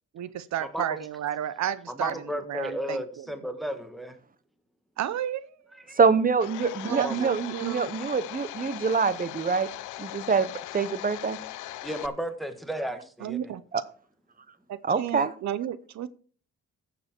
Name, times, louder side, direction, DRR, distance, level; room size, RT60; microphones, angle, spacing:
voice 1, 0.2-3.3 5.0-5.6 6.8-7.9 13.2-13.6 14.7-16.1, right 11 dB, 65° right, 16 dB, 0.7 m, -32 dB
voice 2, 1.9-4.2 5.9-6.0 6.9-7.2 11.8-13.5, equal, ahead, 8 dB, 1.5 m, -33 dB
voice 3, 6.0-9.7 10.0-11.4 13.7-13.8 14.8-15.3, right 5 dB, 30° right, 16 dB, 0.9 m, -25 dB
Domestic sounds home sounds, 6.4-12.1, left 16 dB, 90° left, 0.6 m, -39 dB
14.0 x 6.9 x 4.5 m, 0.42 s
cardioid pair, 90°, 30 cm